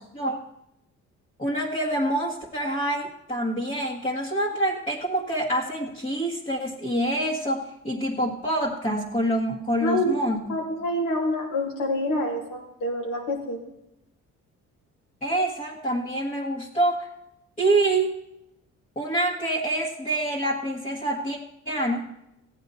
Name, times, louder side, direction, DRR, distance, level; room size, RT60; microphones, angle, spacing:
voice 1, 1.4-10.5 15.2-17.1 17.6-18.1 18.9-21.4 21.6-22.1, right 1 dB, 25° left, -4 dB, 1.8 m, -26 dB
voice 2, 9.8-10.2 10.5-13.6, left 1 dB, 85° left, -1 dB, 3.1 m, -27 dB
15.0 x 9.3 x 4.2 m, 0.84 s
cardioid pair, 90°, 30 cm